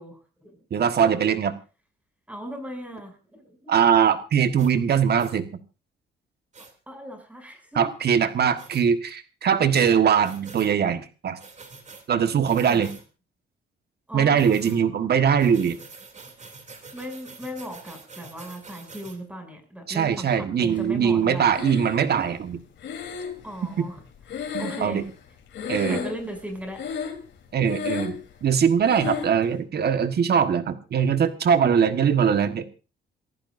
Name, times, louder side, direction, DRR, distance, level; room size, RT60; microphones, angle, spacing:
voice 1, 0.0-0.6 2.3-3.7 6.9-7.9 14.1-15.1 16.9-21.6 23.4-24.0 24.6-25.0 25.9-26.8 31.6-31.9, equal, 5° right, 4 dB, 7.4 m, -38 dB
voice 2, 0.7-1.5 3.7-5.5 7.8-11.4 12.1-12.9 14.1-15.8 19.9-22.6 23.8-23.9 24.5-25.0 25.7-26.0 27.5-32.7, right 7 dB, 55° right, 9 dB, 1.5 m, -21 dB
sound 1, 4.6-4.7 5.2-5.4 6.5-6.7 8.6-8.8 10.2-10.7 11.4-12.0 12.4-13.0 14.3-14.8 15.4-19.2, right 4 dB, 35° right, 3.1 m, -46 dB
Breathing, 21.5-22.2 22.8-25.3 25.5-26.4 26.7-27.3 27.6-28.3 28.9-29.4, left 6 dB, 70° left, 3.7 m, -32 dB
28.0 x 14.5 x 2.7 m, 0.33 s
cardioid pair, 90°, 20 cm